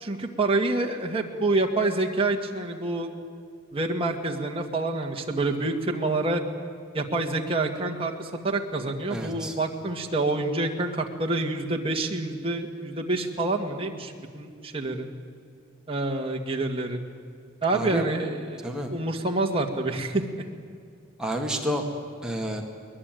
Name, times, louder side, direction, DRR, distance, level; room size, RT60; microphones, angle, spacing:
voice 1, 0.0-3.1 3.7-6.4 6.9-15.1 15.9-17.0 17.6-20.2, right 2 dB, 25° right, 2 dB, 1.8 m, -27 dB
voice 2, 9.1-9.6 17.7-18.1 18.6-18.9 21.2-21.8 22.2-22.6, right 1 dB, 5° right, 1 dB, 2.1 m, -29 dB
22.0 x 20.0 x 9.1 m, 2.2 s
head